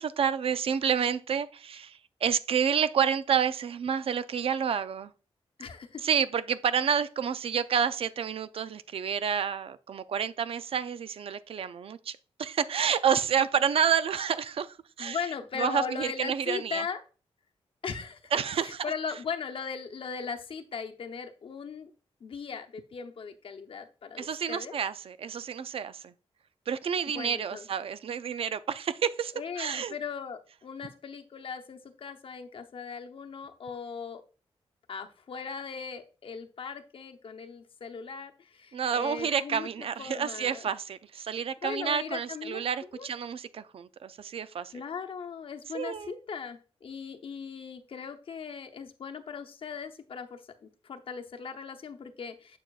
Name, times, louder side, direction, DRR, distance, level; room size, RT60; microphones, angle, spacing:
voice 1, 0.0-5.1 6.0-15.2 15.6-16.8 18.3-18.9 24.2-26.1 26.7-29.9 38.7-44.7 45.7-46.2, right 7 dB, 65° right, 0.4 m, -29 dB
voice 2, 5.6-6.0 15.0-17.0 17.8-18.3 18.6-21.9 22.2-24.8 27.1-27.7 29.3-34.2 34.9-40.7 41.6-42.6 42.9-43.1 44.7-52.6, left 6 dB, 60° left, 0.8 m, -38 dB
7.5 x 6.8 x 2.4 m
wide cardioid pair, 105°, 11 cm